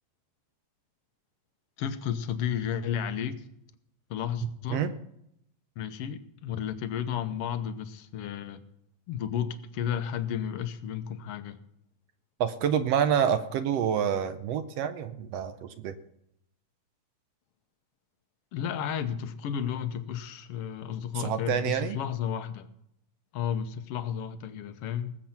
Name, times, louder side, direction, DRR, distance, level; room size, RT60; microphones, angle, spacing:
voice 1, 1.8-3.4 4.1-4.8 5.8-8.6 9.1-11.6 18.5-22.7 23.3-25.2, left 8 dB, 65° left, 10 dB, 1.6 m, -32 dB
voice 2, 12.4-15.9 21.1-22.0, right 8 dB, 70° right, 10 dB, 1.6 m, -27 dB
19.5 x 7.6 x 5.9 m, 0.77 s
omnidirectional pair, 3.3 m